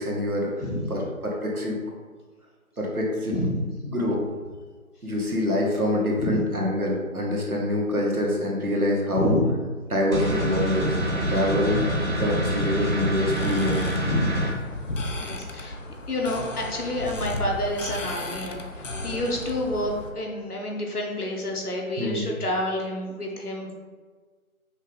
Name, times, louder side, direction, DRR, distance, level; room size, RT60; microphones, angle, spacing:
voice 1, 0.0-0.6 0.9-1.8 2.8-3.3 3.8-4.2 5.0-9.3 9.9-11.0 11.3-11.8 12.2-13.8 22.0-22.3, left 1 dB, 75° right, -2 dB, 1.3 m, -25 dB
voice 2, 3.3-3.7 6.2-6.4 9.1-9.5 11.7-11.8 14.0-14.4 15.2-15.8 16.1-23.7, left 1 dB, 85° left, 0 dB, 1.2 m, -29 dB
sound 1, 10.1-14.5, equal, 50° right, 1.4 m, -26 dB
sound 2, 13.3-20.1, left 1 dB, 60° left, 0.6 m, -34 dB
5.4 x 2.5 x 3.5 m, 1.5 s
figure-of-eight pair, 170°, 44 cm